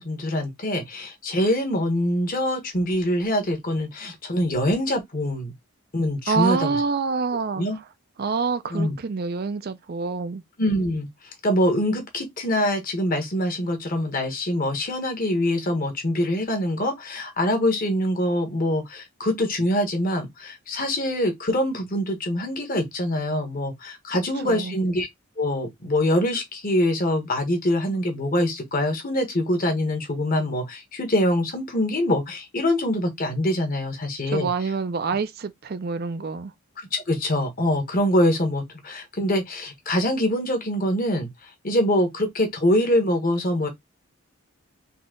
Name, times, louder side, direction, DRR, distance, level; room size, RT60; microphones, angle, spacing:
voice 1, 0.0-5.5 5.9-6.8 7.6-7.8 8.7-9.0 10.6-11.1 11.4-25.1 25.4-34.5 36.9-43.7, left 1 dB, 40° left, 1.2 m, -24 dB
voice 2, 6.3-7.8 8.2-10.4 24.4-24.8 34.3-36.5, right 4 dB, 45° right, 0.4 m, -27 dB
4.1 x 2.8 x 3.7 m
head